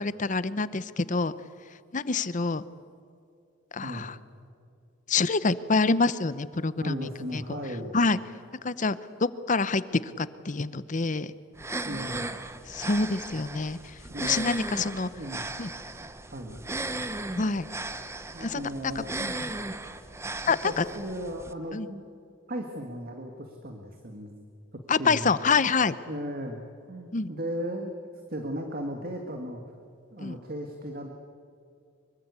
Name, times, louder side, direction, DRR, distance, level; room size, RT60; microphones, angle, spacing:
voice 1, 0.0-1.3 1.9-2.6 3.7-4.1 5.1-7.4 7.9-8.2 8.6-11.3 12.7-15.1 15.6-15.7 17.4-17.7 18.4-18.9 19.2-19.3 20.5-20.8 21.7-21.9 24.9-25.9 27.1-27.3 30.2-30.4, left 4 dB, 40° left, 16 dB, 0.8 m, -27 dB
voice 2, 6.8-7.9 11.9-12.3 14.1-15.4 16.3-16.6 18.3-19.1 20.6-22.0 22.5-24.3 24.7-25.3 26.1-27.9 28.3-29.6 30.1-31.1, equal, 45° right, 4 dB, 1.9 m, -36 dB
sound 1, 11.5-21.5, right 2 dB, 15° right, 0.9 m, -36 dB
24.5 x 23.5 x 8.4 m, 2.5 s
head